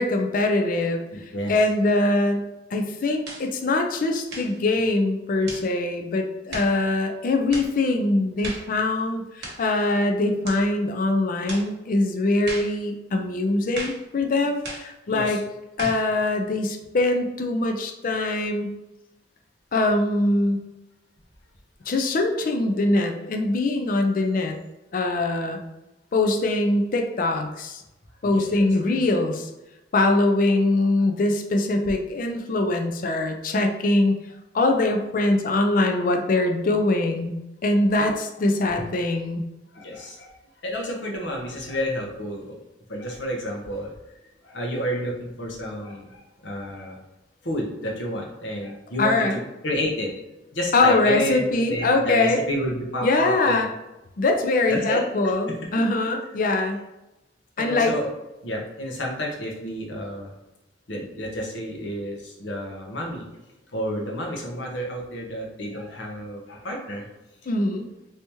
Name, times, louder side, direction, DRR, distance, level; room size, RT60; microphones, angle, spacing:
voice 1, 0.0-1.0 1.5-15.4 15.8-18.7 19.7-20.6 21.9-24.6 24.9-25.6 26.1-27.8 28.2-29.5 29.9-34.1 34.5-39.4 49.0-49.4 50.7-52.4 53.0-53.7 54.2-56.8 57.6-57.9 67.5-67.9, left 2 dB, 45° left, 4 dB, 0.4 m, -23 dB
voice 2, 1.1-1.5 15.1-15.4 15.8-15.9 28.2-28.7 38.0-38.1 38.7-38.8 39.7-40.3 40.6-42.6 42.9-43.9 44.4-47.0 47.4-49.1 49.6-50.1 50.5-53.7 54.7-55.2 57.6-58.1 58.4-60.3 60.9-63.2 63.7-67.0, equal, 70° left, 0 dB, 0.9 m, -30 dB
sound 1, 3.2-3.5 4.3-4.6 5.5-5.7 6.5-6.8 7.5-7.7 8.4-8.7 9.4-9.7 10.4-10.7 11.5-11.7 12.5-12.8 13.7-14.0 14.6-14.9 15.8-16.1, right 2 dB, 60° right, 0.9 m, -36 dB
3.4 x 2.8 x 2.9 m, 0.96 s
head